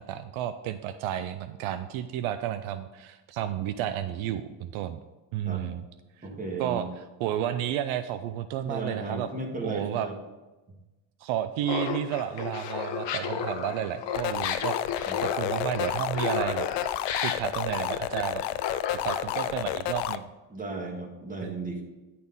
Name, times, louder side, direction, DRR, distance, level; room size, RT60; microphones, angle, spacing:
voice 1, 0.0-5.0 5.3-5.9 6.2-6.3 6.6-6.8 7.2-9.3 9.6-10.1 11.2-16.7 17.2-18.4 19.0-20.3 21.4-21.5, right 11 dB, 75° right, 11 dB, 0.6 m, -32 dB
voice 2, 6.2-6.9 8.6-10.1 15.1-15.2 20.5-21.8, right 3 dB, 15° right, 0 dB, 1.9 m, -35 dB
Laughter, 11.6-19.7, left 7 dB, 55° left, 1.1 m, -33 dB
sound 1, 14.1-20.2, left 13 dB, 90° left, 0.6 m, -31 dB
10.5 x 4.2 x 5.4 m, 1.1 s
cardioid pair, 105°, 49 cm